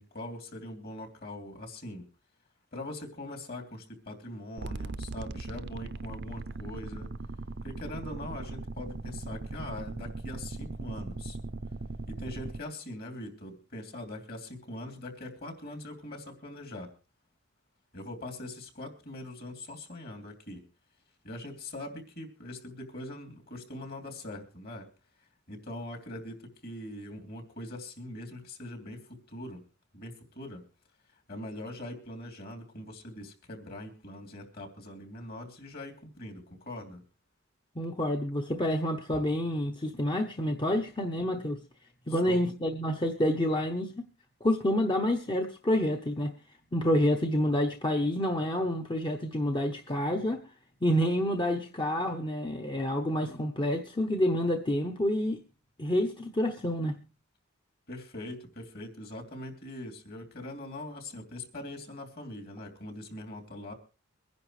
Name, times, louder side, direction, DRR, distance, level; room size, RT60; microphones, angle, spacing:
voice 1, 0.0-2.1 2.7-7.1 7.6-11.4 12.1-16.9 17.9-20.6 21.2-24.9 25.5-29.6 29.9-30.6 31.3-37.0 42.1-42.4 57.9-63.7, left 1 dB, 50° left, 3.1 m, -42 dB
sound 1, 4.6-12.6, right 3 dB, 55° right, 0.6 m, -39 dB
voice 2, 37.8-41.6 42.1-43.9 44.4-46.4 46.7-50.4 50.8-55.4 55.8-57.0, left 1 dB, 25° left, 0.8 m, -28 dB
23.5 x 10.5 x 3.2 m
head